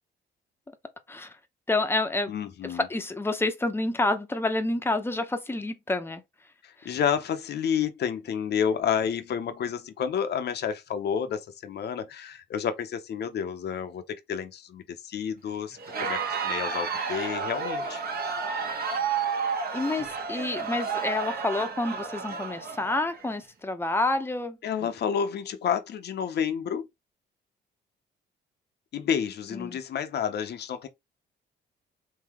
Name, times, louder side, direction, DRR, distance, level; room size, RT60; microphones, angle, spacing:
voice 1, 1.7-2.3 2.6-6.2 18.6-18.8 19.7-24.6 29.5-29.8, left 2 dB, 10° left, 0.7 m, -28 dB
voice 2, 2.3-2.9 6.6-18.0 24.6-26.9 28.9-30.9, left 8 dB, 55° left, 0.7 m, -30 dB
Crowd, 15.8-23.3, right 5 dB, 50° right, 1.1 m, -31 dB
3.8 x 2.8 x 2.9 m
cardioid pair, 90°, 20 cm